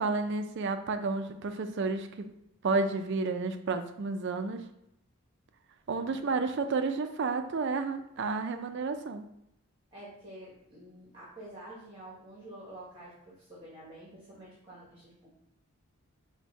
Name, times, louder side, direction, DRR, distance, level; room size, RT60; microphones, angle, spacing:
voice 1, 0.0-2.3 2.6-4.6 5.9-9.2, right 4 dB, 50° right, 8 dB, 0.4 m, -31 dB
voice 2, 5.9-6.2 8.2-8.3 9.9-15.4, right 1 dB, 20° right, -7 dB, 0.9 m, -49 dB
4.2 x 2.2 x 4.6 m, 0.80 s
head